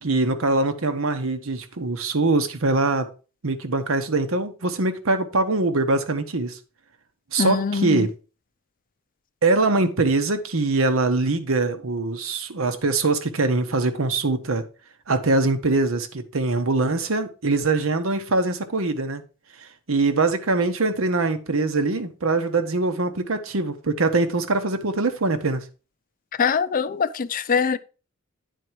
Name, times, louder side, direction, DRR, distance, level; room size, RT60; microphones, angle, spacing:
voice 1, 0.0-3.1 3.4-6.6 7.3-8.1 9.4-14.6 15.1-19.2 19.6-25.6, right 3 dB, 80° right, 1.0 m, -23 dB
voice 2, 7.4-8.1 26.4-27.8, left 5 dB, 40° left, 0.5 m, -23 dB
9.4 x 4.6 x 4.6 m
head